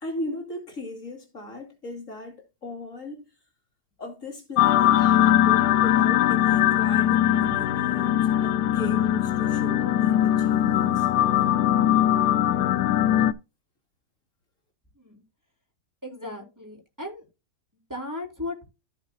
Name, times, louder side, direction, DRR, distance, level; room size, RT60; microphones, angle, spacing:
voice 1, 0.0-3.2 4.0-11.1, left 1 dB, 50° left, 2.7 m, -38 dB
sound 1, 4.6-13.3, left 12 dB, 80° left, 1.2 m, -21 dB
voice 2, 16.0-17.3 17.7-18.6, left 2 dB, 10° right, 3.8 m, -36 dB
15.0 x 5.1 x 2.8 m
omnidirectional pair, 1.7 m